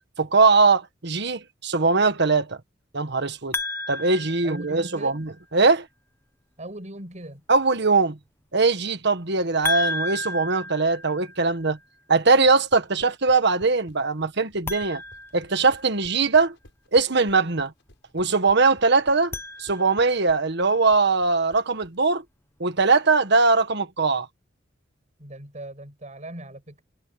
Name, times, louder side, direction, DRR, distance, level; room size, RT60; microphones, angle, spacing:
voice 1, 0.2-2.6 2.9-3.6 3.9-5.9 7.5-8.2 8.5-11.8 12.1-15.0 15.3-16.5 16.9-17.7 18.1-22.2 22.6-24.3, right 4 dB, 60° right, 1.5 m, -21 dB
sound 1, 3.5-5.2 9.6-11.7 14.6-16.2 19.1-20.3, left 2 dB, 10° left, 0.9 m, -33 dB
voice 2, 4.2-5.3 6.6-7.4 25.2-26.8, right 1 dB, 40° right, 7.2 m, -39 dB
sound 2, 12.5-21.9, left 1 dB, 65° left, 7.5 m, -52 dB
head